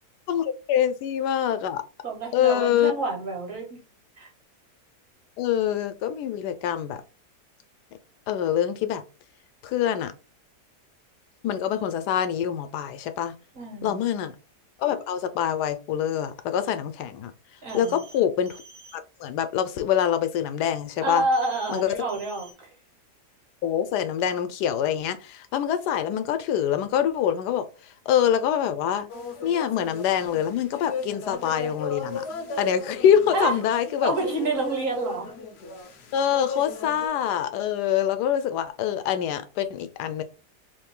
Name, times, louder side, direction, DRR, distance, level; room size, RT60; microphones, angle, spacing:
voice 1, 0.3-1.8 2.3-2.9 5.4-7.0 8.3-9.0 9.6-10.1 11.4-13.3 13.8-14.3 14.8-17.3 17.7-18.6 18.9-21.2 21.7-22.0 23.6-27.7 28.1-29.1 29.4-32.2 32.6-34.1 36.1-40.2, left 9 dB, 80° left, 1.2 m, -25 dB
voice 2, 2.0-3.8 4.2-4.3 13.5-14.0 17.6-18.0 21.0-22.7 33.3-33.5 34.0-35.3, right 2 dB, 55° right, 1.6 m, -28 dB
sound 1, 17.7-18.2 18.5-18.9 21.3-21.8 22.1-22.5, right 3 dB, 75° right, 1.4 m, -48 dB
sound 2, 29.1-37.1, left 3 dB, 65° left, 0.6 m, -36 dB
3.3 x 2.5 x 3.7 m
omnidirectional pair, 1.7 m